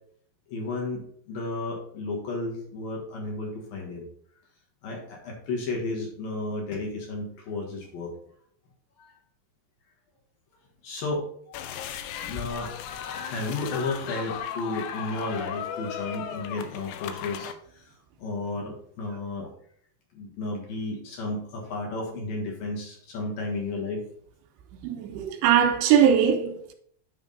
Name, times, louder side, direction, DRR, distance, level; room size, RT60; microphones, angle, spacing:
voice 1, 0.5-4.0 4.8-8.1 9.0-9.1 10.8-11.6 12.2-12.7 13.1-19.5 20.1-24.0, left 2 dB, 60° left, 2.9 m, -33 dB
sound 1, 11.5-17.5, left 8 dB, 80° left, 2.6 m, -36 dB
voice 2, 24.8-26.7, right 8 dB, 85° right, 2.9 m, -21 dB
9.3 x 3.6 x 5.2 m
omnidirectional pair, 5.0 m